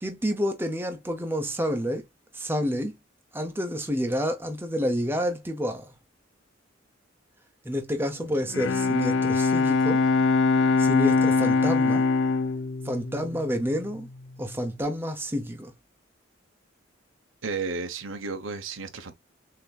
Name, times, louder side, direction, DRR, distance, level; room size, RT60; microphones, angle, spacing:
voice 1, 0.0-2.1 2.3-2.9 3.3-5.9 7.6-10.0 10.8-12.1 12.8-14.1 14.4-15.7, equal, 10° right, 0.8 m, -29 dB
Bowed string instrument, 8.3-14.1, left 4 dB, 65° left, 0.5 m, -23 dB
voice 2, 17.4-19.1, right 4 dB, 80° right, 1.0 m, -33 dB
6.8 x 2.9 x 2.4 m
head